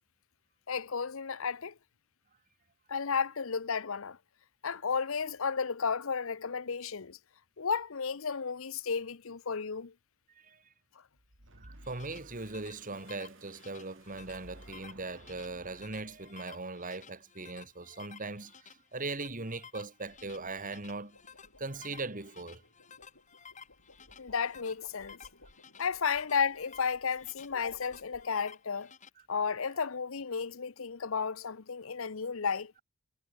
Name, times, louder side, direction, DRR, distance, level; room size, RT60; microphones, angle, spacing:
voice 1, 0.7-1.7 2.9-4.2 4.6-7.2 7.6-9.9 24.2-25.2 25.8-28.9 29.3-32.7, left 6 dB, 65° left, 0.8 m, -33 dB
sound 1, 11.2-16.4, right 1 dB, 60° right, 6.0 m, -56 dB
sound 2, 11.6-29.1, left 6 dB, 35° left, 6.1 m, -54 dB
voice 2, 11.6-21.2 21.6-22.6, right 3 dB, 40° right, 2.3 m, -40 dB
sound 3, 19.9-28.7, left 2 dB, 80° left, 7.6 m, -60 dB
head